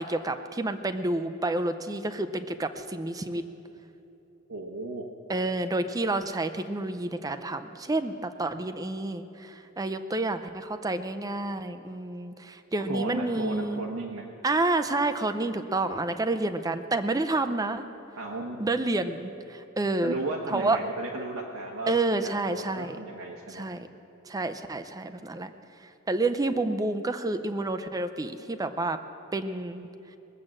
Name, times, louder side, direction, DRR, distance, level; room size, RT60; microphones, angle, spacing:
voice 1, 0.0-3.4 5.3-13.8 14.4-17.8 18.6-20.2 20.5-20.8 21.9-23.0 23.5-23.9 24.2-25.5 25.8-29.0 29.3-29.9, right 2 dB, 15° right, 9 dB, 0.5 m, -29 dB
voice 2, 4.5-5.0 12.9-14.3 18.2-18.6 20.0-23.7, right 2 dB, 85° right, -1 dB, 1.2 m, -35 dB
20.0 x 7.6 x 7.6 m, 2.9 s
head